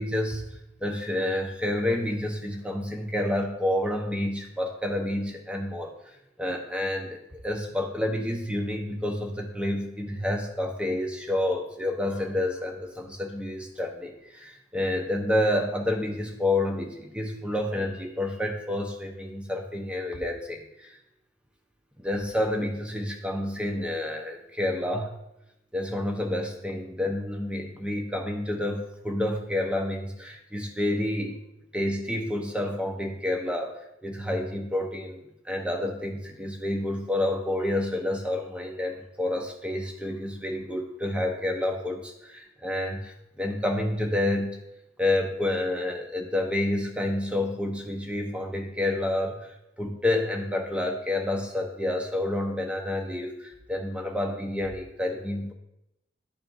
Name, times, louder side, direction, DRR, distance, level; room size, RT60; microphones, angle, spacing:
voice 1, 0.0-5.9 6.4-21.0 22.0-25.2 25.7-31.4 31.7-44.7 45.0-55.5, left 1 dB, 5° right, 2 dB, 0.8 m, -29 dB
12.0 x 4.3 x 2.6 m, 0.86 s
head